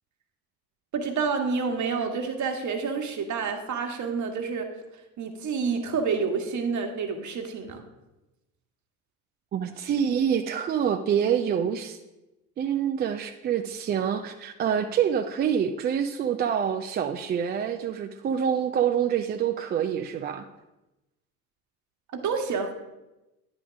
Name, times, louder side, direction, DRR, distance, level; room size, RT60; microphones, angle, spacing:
voice 1, 0.9-4.7 5.2-7.8 22.2-22.7, right 5 dB, 40° right, 4 dB, 1.4 m, -28 dB
voice 2, 9.5-12.0 12.6-20.5, right 8 dB, 25° right, 7 dB, 0.3 m, -26 dB
9.7 x 3.7 x 6.1 m, 1.0 s
figure-of-eight pair, 55°, 45 cm